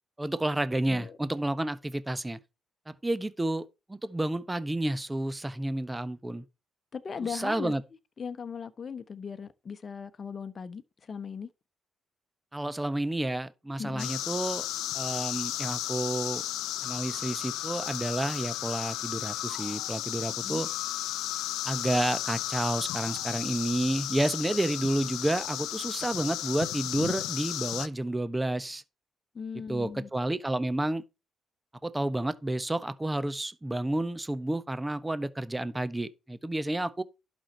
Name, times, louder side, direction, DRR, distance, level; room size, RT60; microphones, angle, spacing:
voice 1, 0.2-2.4 2.9-6.4 7.2-7.8 12.5-14.7 14.9-16.4 16.8-20.7 21.6-28.8 29.7-31.0 31.8-37.0, right 1 dB, 15° right, 1.1 m, -30 dB
voice 2, 6.9-7.7 8.2-11.5 13.8-14.1 20.4-20.6 29.3-30.1, left 6 dB, 45° left, 1.0 m, -38 dB
sound 1, 14.0-27.9, left 14 dB, 80° left, 0.5 m, -34 dB
11.5 x 6.4 x 4.4 m
hypercardioid pair, 45°, 0 cm